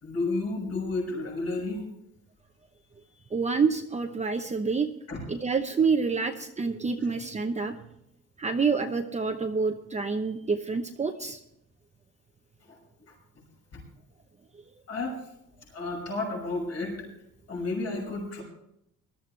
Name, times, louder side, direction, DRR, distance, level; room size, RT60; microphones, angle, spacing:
voice 1, 0.0-1.8 5.1-5.2 12.7-12.8 13.7-13.8 14.9-15.2 15.7-17.0 17.5-18.4, left 3 dB, 50° left, -1 dB, 6.4 m, -31 dB
voice 2, 3.3-4.9 5.3-7.7 8.4-11.4, right 5 dB, 20° right, 4 dB, 0.8 m, -27 dB
20.5 x 13.0 x 3.3 m, 0.78 s
cardioid pair, 135°, 33 cm